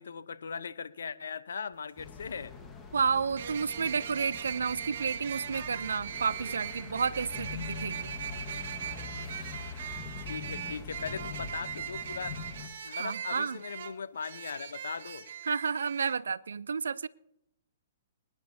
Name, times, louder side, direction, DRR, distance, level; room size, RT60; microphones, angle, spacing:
voice 1, 0.0-2.5 10.2-12.4 12.8-15.2, left 6 dB, 80° left, 14 dB, 0.8 m, -39 dB
sound 1, 1.7-1.8 3.4-16.2, right 8 dB, 60° right, 1.2 m, -40 dB
sound 2, 2.0-12.7, left 5 dB, 20° left, 1.5 m, -43 dB
voice 2, 2.9-8.1 12.9-13.6 15.5-17.1, right 5 dB, 80° right, 20 dB, 0.5 m, -31 dB
25.0 x 10.0 x 2.7 m, 0.79 s
hypercardioid pair, 130°, 0 cm